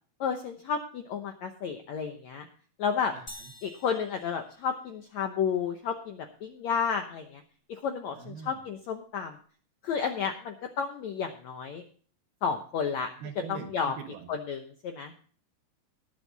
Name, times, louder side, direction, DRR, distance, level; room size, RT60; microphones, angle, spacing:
voice 1, 0.2-2.5 2.8-3.1 3.6-7.4 7.7-9.4 9.8-11.8 12.4-13.1 13.5-14.0 14.3-15.2, left 6 dB, 85° left, 5 dB, 1.6 m, -32 dB
sound 1, 3.3-5.2, left 1 dB, 50° left, 0.4 m, -49 dB
voice 2, 8.2-8.6 13.2-14.3, right 7 dB, 75° right, 7 dB, 2.9 m, -42 dB
19.5 x 7.1 x 4.0 m, 0.43 s
omnidirectional pair, 4.6 m